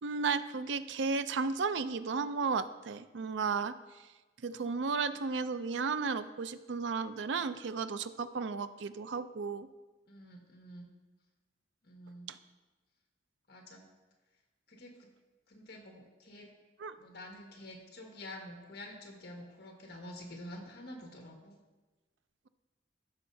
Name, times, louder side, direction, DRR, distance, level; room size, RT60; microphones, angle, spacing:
voice 1, 0.0-3.7 4.4-9.7 12.3-12.4 16.8-17.0, right 4 dB, 70° right, 12 dB, 0.4 m, -34 dB
voice 2, 10.1-10.9 11.8-12.3 13.5-13.9 14.7-14.9 15.5-16.5 17.0-21.5, left 1 dB, 55° left, 1 dB, 1.6 m, -48 dB
14.5 x 6.6 x 2.7 m, 1.2 s
head